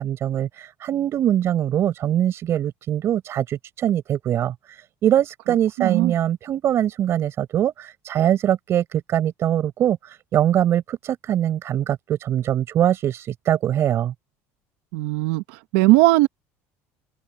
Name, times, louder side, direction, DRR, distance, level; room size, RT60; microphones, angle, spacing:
voice 1, 0.0-4.8 5.0-14.1, right 11 dB, 45° right, 6.0 m, -22 dB
voice 2, 5.8-6.1 14.9-16.3, right 20 dB, 80° right, 1.2 m, -18 dB
open air
cardioid pair, 130°, 6 cm